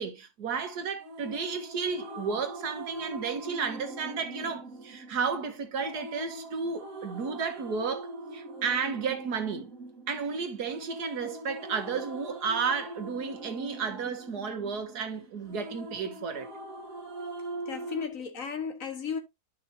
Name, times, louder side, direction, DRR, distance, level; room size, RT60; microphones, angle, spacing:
voice 1, 0.0-9.7 10.1-16.5, right 5 dB, 85° right, 1.9 m, -33 dB
sound 1, 1.0-18.1, right 1 dB, 60° right, 1.8 m, -42 dB
voice 2, 17.7-19.2, left 6 dB, 60° left, 1.8 m, -34 dB
11.5 x 5.7 x 2.7 m
omnidirectional pair, 1.6 m